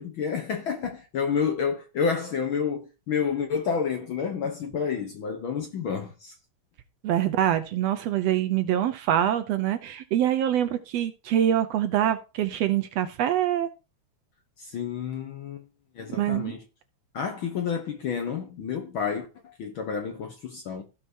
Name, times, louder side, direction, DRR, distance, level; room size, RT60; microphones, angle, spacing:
voice 1, 0.0-6.3 14.6-15.6 15.9-16.6 17.1-20.8, left 6 dB, 60° left, 1.4 m, -29 dB
voice 2, 7.0-13.7 16.1-16.5, right 11 dB, 70° right, 1.7 m, -25 dB
16.5 x 5.9 x 2.7 m
omnidirectional pair, 3.3 m